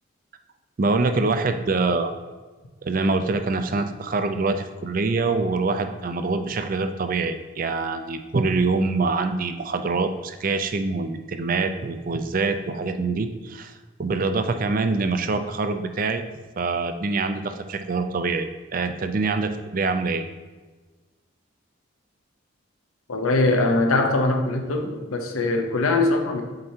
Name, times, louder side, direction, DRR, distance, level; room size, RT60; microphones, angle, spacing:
voice 1, 0.8-2.1 2.8-16.2 16.6-20.2, right 3 dB, 40° right, 8 dB, 0.4 m, -25 dB
voice 2, 23.1-26.4, left 2 dB, 85° left, 4 dB, 0.8 m, -22 dB
7.7 x 4.4 x 2.8 m, 1.3 s
head